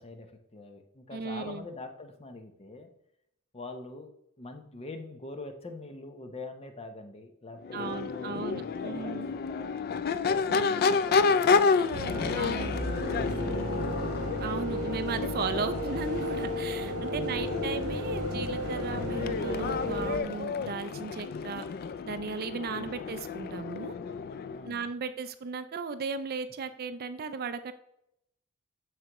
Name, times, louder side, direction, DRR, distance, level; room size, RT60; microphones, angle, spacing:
voice 1, 0.0-2.9 3.5-4.1 4.4-11.7 12.0-14.1 17.1-17.5 20.5-20.7 22.7-22.9 24.5-24.9, left 2 dB, 25° left, 6 dB, 0.8 m, -44 dB
voice 2, 1.1-1.7 7.7-9.3 10.5-10.9 12.3-12.8 14.4-21.6 22.0-23.9 24.6-27.7, right 4 dB, 45° right, 12 dB, 0.4 m, -36 dB
Crowd / Race car auto racing / Accelerating revving vroom, 7.6-24.7, left 5 dB, 45° left, 0.3 m, -30 dB
sound 1, 11.9-20.2, equal, 85° right, 1.3 m, -34 dB
7.9 x 6.3 x 3.0 m, 0.78 s
head